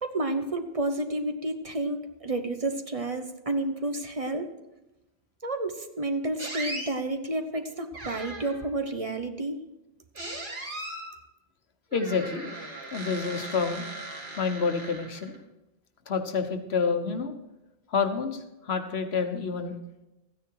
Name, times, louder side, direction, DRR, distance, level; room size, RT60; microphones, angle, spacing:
voice 1, 0.0-4.5 5.4-9.6, right 2 dB, 35° right, 7 dB, 1.0 m, -30 dB
sound 1, 6.4-6.9 7.9-8.7 10.1-11.1 11.9-15.4, right 2 dB, 55° right, 2.3 m, -38 dB
voice 2, 11.9-12.5 12.9-13.8 14.4-15.3 16.1-17.3 17.9-19.7, left 5 dB, 90° left, 7 dB, 1.4 m, -28 dB
14.0 x 9.6 x 4.7 m, 0.97 s
omnidirectional pair, 1.0 m